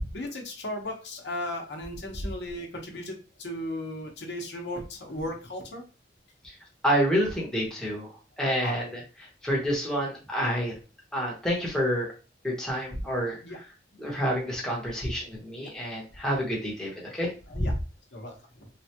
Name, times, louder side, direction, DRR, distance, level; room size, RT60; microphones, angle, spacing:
voice 1, 0.1-5.8 8.6-8.7 13.4-13.6 15.6-15.7 17.5-17.7 18.1-18.7, left 1 dB, 70° left, 1 dB, 0.9 m, -36 dB
voice 2, 6.8-8.1 8.4-9.0 9.4-10.7 11.1-12.1 12.4-13.4 14.0-17.8, equal, 5° left, -3 dB, 0.9 m, -28 dB
3.2 x 2.2 x 2.8 m, 0.33 s
head